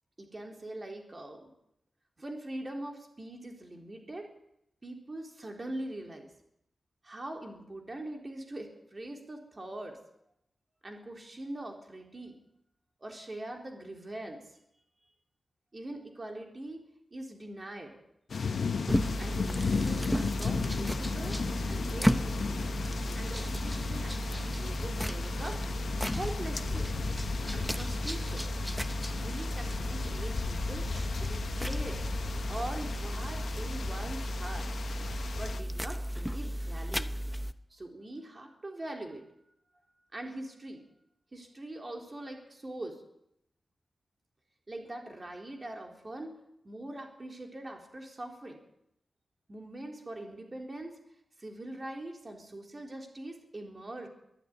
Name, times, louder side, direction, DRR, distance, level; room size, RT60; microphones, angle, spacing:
voice 1, 0.2-1.5 2.2-4.3 4.8-6.3 7.0-10.0 10.8-12.4 13.0-14.4 15.7-16.8 17.1-18.0 19.2-22.4 23.2-25.6 26.1-26.9 27.5-28.5 29.2-30.9 31.2-32.0 32.5-34.7 35.3-37.1 37.7-39.3 40.1-40.8 41.3-43.0 44.7-46.3 46.6-48.6 49.5-51.0 51.4-54.1, right 1 dB, 25° right, 2 dB, 3.8 m, -42 dB
sound 1, 18.3-35.6, left 5 dB, 65° left, 1.4 m, -36 dB
sound 2, 18.9-37.5, equal, ahead, 0.9 m, -34 dB
23.0 x 13.0 x 9.8 m, 0.77 s
wide cardioid pair, 150°, 0 cm